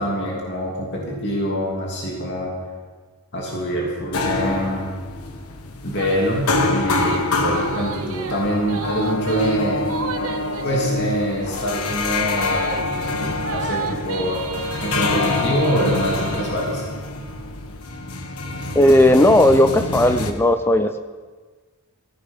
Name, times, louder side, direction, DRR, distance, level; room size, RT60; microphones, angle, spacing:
voice 1, 0.0-2.5 3.3-4.9 5.8-9.9 10.6-13.0 13.4-16.8, equal, 50° left, -3 dB, 2.9 m, -24 dB
sound 1, 4.1-20.3, left 3 dB, 80° left, 1.4 m, -26 dB
sound 2, 5.9-16.5, right 5 dB, 70° right, 1.2 m, -34 dB
voice 2, 18.8-21.0, left 1 dB, 10° left, 9 dB, 0.4 m, -15 dB
16.0 x 15.0 x 5.6 m, 1.4 s
head